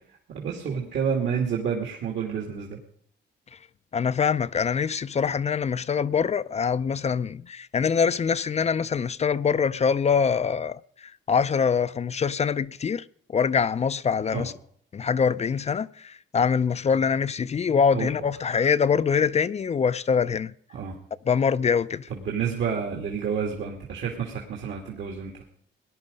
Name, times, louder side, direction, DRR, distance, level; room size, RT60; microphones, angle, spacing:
voice 1, 0.3-2.8 14.3-14.5 17.9-18.1 20.7-20.9 22.1-25.4, right 7 dB, 70° right, 2.5 m, -29 dB
voice 2, 3.9-13.0 13.3-14.5 14.9-20.5 21.3-22.1, left 6 dB, 35° left, 0.5 m, -24 dB
19.0 x 11.0 x 5.2 m
cardioid pair, 90°, 20 cm